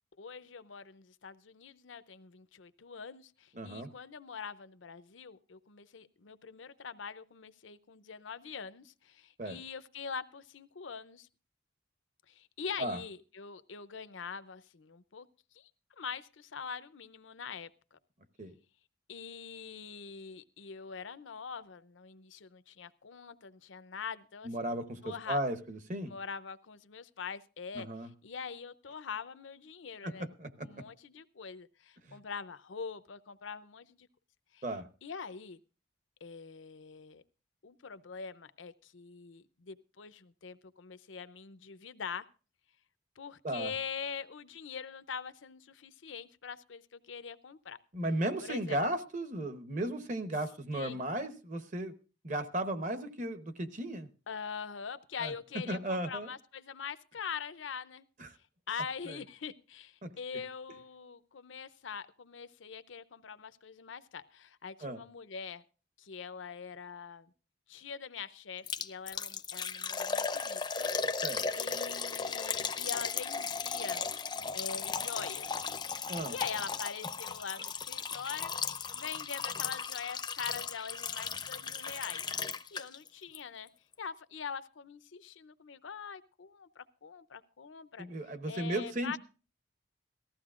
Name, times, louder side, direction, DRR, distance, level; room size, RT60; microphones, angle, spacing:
voice 1, 0.2-11.3 12.3-15.3 15.5-15.7 16.0-18.0 19.1-24.8 25.0-25.4 26.1-30.3 30.6-34.1 34.5-34.6 35.0-35.6 36.2-37.2 37.6-42.3 43.2-47.8 48.4-48.8 50.7-51.0 54.3-58.1 58.7-65.6 66.0-67.3 67.7-70.9 71.6-74.0 74.5-75.5 76.3-78.6 78.9-82.2 82.7-83.7 84.0-88.1 88.4-89.2, left 6 dB, 80° left, 14 dB, 0.7 m, -43 dB
voice 2, 3.5-3.9 9.4-9.6 12.8-13.0 18.4-18.5 24.4-26.1 27.7-28.1 30.0-30.8 32.1-32.2 34.6-34.9 43.4-43.7 47.9-51.9 52.2-54.1 55.2-55.3 55.7-56.3 58.2-58.3 59.1-59.2 60.0-60.1 64.8-65.0 71.2-71.4 76.1-76.4 88.0-89.2, right 1 dB, 40° right, 9 dB, 0.9 m, -35 dB
Liquid, 68.7-83.1 83.3-83.4 83.9-84.0, left 5 dB, 20° left, 0.5 m, -36 dB
19.0 x 14.5 x 2.5 m, 0.35 s
head